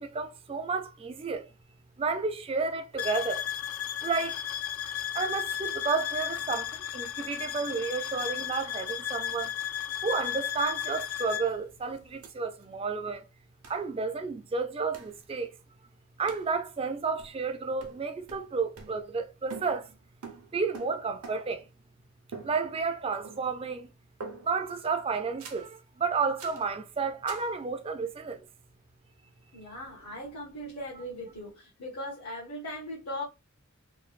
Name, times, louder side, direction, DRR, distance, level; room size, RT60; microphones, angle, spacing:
voice 1, 0.0-1.5 2.0-3.5 4.0-4.4 5.1-9.5 10.0-13.2 13.7-15.5 16.2-19.9 20.5-21.6 22.4-23.9 24.4-28.5, right 4 dB, 25° right, 0.3 m, -31 dB
sound 1, 3.0-11.5, left 10 dB, 60° left, 0.3 m, -34 dB
sound 2, 12.2-12.3 12.6-12.7 13.6-13.9 14.9-15.2 16.3-16.5 17.2-17.5 17.8-19.2 19.5-21.7 22.3-23.0 23.2-23.7 24.2-24.7 25.4-25.7 26.4-26.7 27.3-27.5, right 4 dB, 80° right, 0.7 m, -46 dB
voice 2, 29.5-33.2, left 1 dB, 85° left, 1.1 m, -39 dB
3.1 x 2.2 x 2.4 m
head